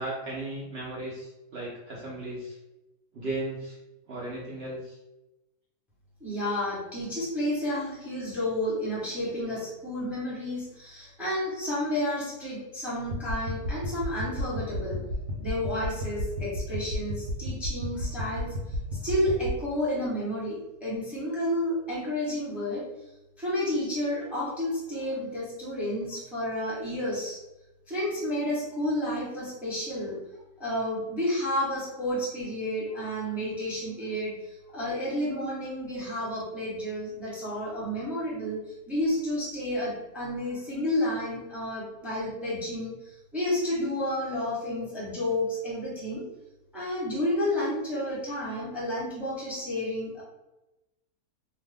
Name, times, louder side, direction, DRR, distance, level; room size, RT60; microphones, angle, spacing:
voice 1, 0.0-2.6 3.1-3.8 4.1-5.0, right 2 dB, 55° right, -6 dB, 0.7 m, -36 dB
voice 2, 6.2-15.0 15.4-22.8 23.4-27.4 27.9-30.2 30.6-46.3 46.7-50.2, left 1 dB, ahead, -8 dB, 0.8 m, -31 dB
sound 1, 13.1-19.5, left 1 dB, 80° right, 1.2 m, -33 dB
2.8 x 2.2 x 3.4 m, 0.99 s
omnidirectional pair, 1.8 m